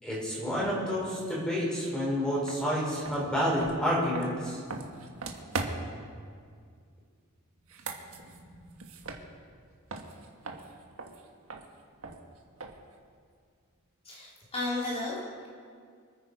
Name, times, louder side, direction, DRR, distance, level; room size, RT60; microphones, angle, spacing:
voice 1, 0.0-4.6, equal, 5° left, -6 dB, 5.4 m, -29 dB
sound 1, 2.5-2.6 3.0-6.0 7.6-9.6 9.9-13.0, right 3 dB, 70° right, 1.6 m, -40 dB
voice 2, 14.1-15.5, left 2 dB, 25° left, -6 dB, 3.6 m, -34 dB
26.0 x 9.4 x 4.9 m, 2.1 s
head